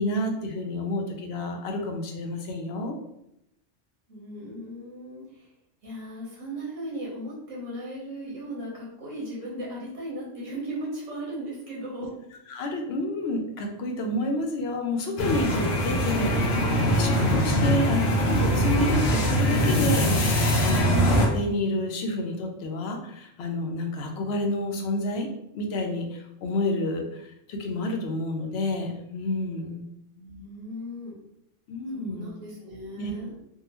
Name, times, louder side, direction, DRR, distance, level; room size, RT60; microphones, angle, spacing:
voice 1, 0.0-3.0 12.5-16.6 17.0-25.3 25.5-29.8 31.7-32.3 33.0-33.1, left 1 dB, 65° left, 2 dB, 0.8 m, -29 dB
voice 2, 4.1-5.5 5.8-12.1 30.1-31.2 31.9-33.3, right 1 dB, 75° right, -5 dB, 1.4 m, -37 dB
sound 1, 15.2-21.3, equal, 90° left, 1.0 m, -22 dB
3.5 x 2.3 x 2.9 m, 0.79 s
omnidirectional pair, 1.3 m